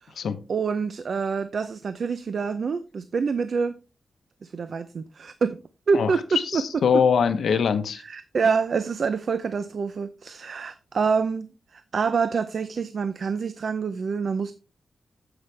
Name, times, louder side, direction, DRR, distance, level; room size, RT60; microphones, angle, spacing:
voice 1, 0.5-3.8 4.4-6.2 6.5-6.6 8.0-14.5, right 5 dB, 60° right, 0.6 m, -26 dB
voice 2, 5.9-8.0, left 6 dB, 85° left, 1.0 m, -23 dB
9.6 x 8.0 x 3.3 m
wide cardioid pair, 125°, 0 cm